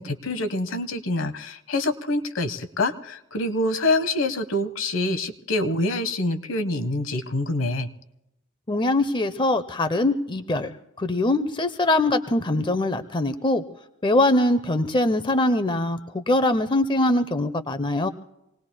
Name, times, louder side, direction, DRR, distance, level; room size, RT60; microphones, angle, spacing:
voice 1, 0.0-7.9, left 2 dB, 75° left, 9 dB, 1.0 m, -26 dB
voice 2, 8.7-13.6 14.0-18.1, left 1 dB, 25° left, 9 dB, 0.5 m, -22 dB
27.0 x 19.0 x 2.2 m, 0.88 s
head